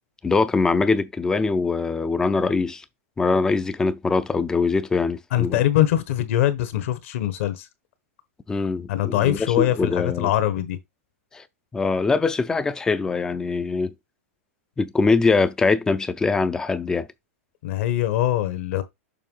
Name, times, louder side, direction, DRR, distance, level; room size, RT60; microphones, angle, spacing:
voice 1, 0.2-2.8 3.2-5.6 8.5-10.3 11.3-11.4 11.7-13.9 14.8-17.1, left 4 dB, 10° left, 0.5 m, -22 dB
voice 2, 5.3-7.7 8.9-10.8 17.6-18.8, left 12 dB, 55° left, 1.2 m, -22 dB
6.7 x 2.7 x 5.4 m
supercardioid pair, 155°, 8 cm